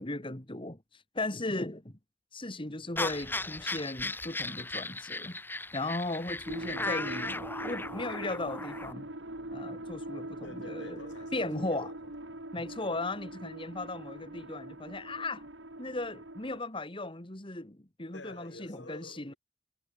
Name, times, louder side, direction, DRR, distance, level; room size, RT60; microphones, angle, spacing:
voice 1, 0.0-1.9 2.3-5.4 5.7-9.1 9.5-11.0 11.3-11.9 12.5-15.5 15.8-19.3, left 2 dB, 30° left, 2.1 m, -37 dB
sound 1, 3.0-8.9, left 2 dB, 10° left, 2.1 m, -37 dB
sound 2, 6.4-16.6, right 1 dB, 85° right, 4.8 m, -42 dB
voice 2, 10.4-12.4 18.1-19.4, left 2 dB, 75° left, 4.8 m, -50 dB
head